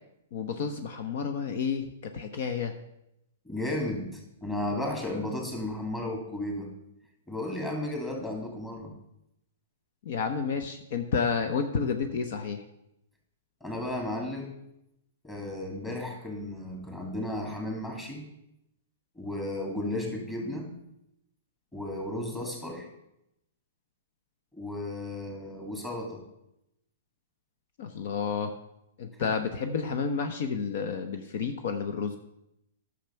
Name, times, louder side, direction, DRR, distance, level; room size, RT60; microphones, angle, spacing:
voice 1, 0.3-2.7 10.0-12.6 27.8-28.5 29.0-32.2, left 6 dB, 60° left, 7 dB, 0.8 m, -30 dB
voice 2, 3.4-6.7 7.3-8.9 13.6-14.6 15.2-18.2 19.2-20.7 21.7-22.9 24.5-26.2 29.2-29.3, left 1 dB, 10° left, 0 dB, 2.5 m, -34 dB
10.5 x 6.6 x 5.7 m, 0.83 s
hypercardioid pair, 135°, 0 cm